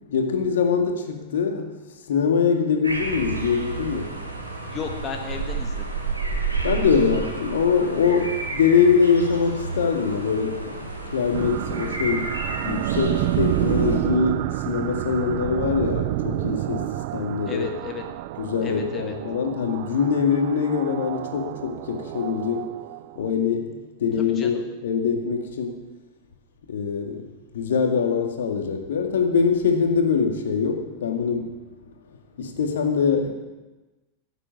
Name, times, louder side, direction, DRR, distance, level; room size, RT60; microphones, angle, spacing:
voice 1, 0.1-1.7 2.1-4.2 6.6-17.7 18.4-22.7 23.2-25.9 26.7-27.2 27.5-31.6 32.4-33.3, left 6 dB, 60° left, 4 dB, 2.0 m, -23 dB
sound 1, 2.8-14.0, right 4 dB, 85° right, 2.6 m, -31 dB
voice 2, 4.7-5.9 17.5-18.0 18.6-19.1 24.4-24.6, left 6 dB, 25° left, 3 dB, 1.4 m, -34 dB
sound 2, 11.3-23.3, right 16 dB, 50° right, 0.3 m, -29 dB
15.5 x 8.2 x 7.1 m, 1.1 s
figure-of-eight pair, 90°, 0 cm